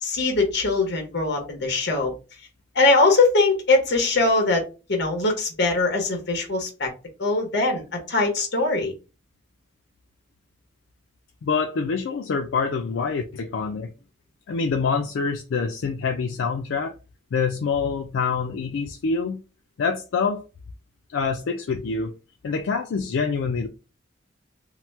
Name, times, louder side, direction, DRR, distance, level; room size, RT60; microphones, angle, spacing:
voice 1, 0.0-2.1 2.7-4.6 4.9-6.9 7.2-8.9, left 3 dB, 65° left, 1.0 m, -21 dB
voice 2, 11.4-13.9 14.5-16.9 17.3-19.4 19.8-20.4 21.1-22.1 22.4-23.7, left 5 dB, 85° left, 0.4 m, -26 dB
2.9 x 2.1 x 3.2 m
head